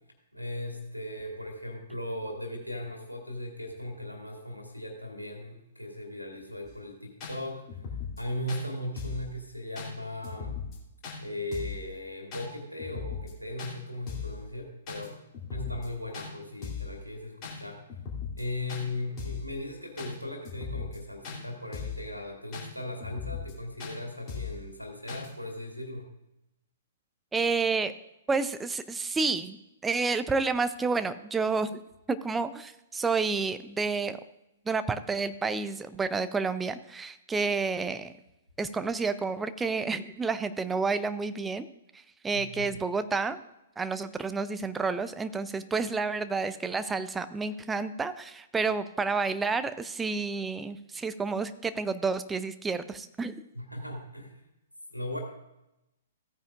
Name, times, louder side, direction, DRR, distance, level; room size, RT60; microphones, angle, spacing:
voice 1, 0.3-7.6 8.2-10.6 11.2-15.2 15.5-17.8 18.4-26.1 42.3-42.8 53.5-54.4 54.9-55.2, left 1 dB, 90° left, 2 dB, 2.3 m, -38 dB
sound 1, 6.6-6.7 7.2-7.3 7.7-8.2 8.5-8.6 9.0-9.3 9.8-9.9 10.2-10.8 11.0-11.2 11.5-11.8 12.3-12.5 12.8-13.3 13.6-13.7 14.1-14.4 14.9-15.1 15.3-15.9 16.1-16.3 16.6-16.9 17.4-17.6 17.9-18.4 18.7-18.8 19.2-19.5 20.0-20.1 20.4-21.0 21.2-21.4 21.7-22.0 22.5-22.7 23.0-23.5 23.8-23.9 24.3-24.6 25.1-25.3, left 6 dB, 30° left, 2.9 m, -38 dB
voice 2, 27.3-27.9 28.3-31.8 32.1-34.2 34.7-38.1 38.6-41.7 42.2-43.4 43.8-53.4, right 4 dB, 10° right, 12 dB, 0.5 m, -30 dB
16.0 x 9.4 x 2.5 m, 0.91 s
figure-of-eight pair, 115°, 0 cm